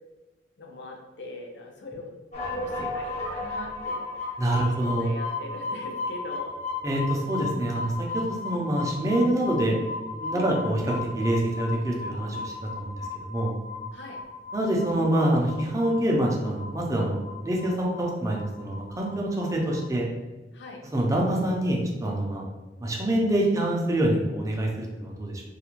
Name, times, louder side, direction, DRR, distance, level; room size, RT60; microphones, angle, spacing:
voice 1, 0.6-2.1 2.5-4.3 4.8-6.6 10.3-10.5 13.9-14.2 20.5-20.8, left 2 dB, 75° left, 1 dB, 0.5 m, -41 dB
sound 1, 2.3-19.1 19.4-19.8, left 3 dB, 40° left, 0.7 m, -35 dB
voice 2, 4.4-5.1 6.8-9.8 10.1-13.5 14.5-20.1 20.9-22.5 22.8-25.4, right 1 dB, 20° right, -1 dB, 0.4 m, -26 dB
2.4 x 2.1 x 2.9 m, 1.1 s
head